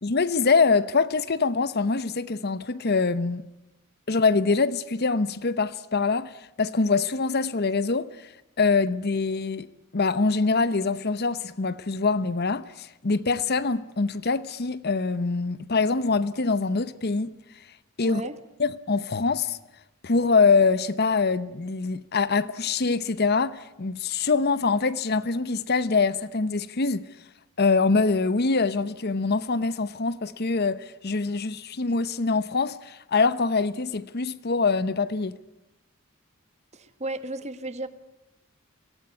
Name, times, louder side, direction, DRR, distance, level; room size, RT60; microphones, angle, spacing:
voice 1, 0.0-3.4 4.1-9.7 9.9-17.7 18.0-18.2 18.6-19.6 20.0-27.1 27.6-35.4, left 4 dB, 50° left, 0.8 m, -24 dB
voice 2, 18.0-18.4 36.7-37.9, right 2 dB, 30° right, 1.5 m, -34 dB
25.0 x 17.5 x 9.7 m
head